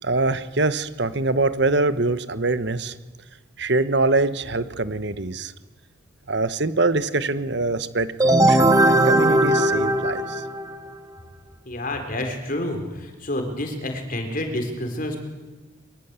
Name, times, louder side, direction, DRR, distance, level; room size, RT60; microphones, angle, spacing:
voice 1, 0.0-2.9 3.6-5.5 6.3-10.4, right 3 dB, 55° right, 13 dB, 1.2 m, -24 dB
sound 1, 8.2-10.9, right 1 dB, 20° right, 1.7 m, -18 dB
voice 2, 11.7-15.2, left 1 dB, 40° left, 5 dB, 4.2 m, -29 dB
23.5 x 23.0 x 8.3 m, 1.2 s
head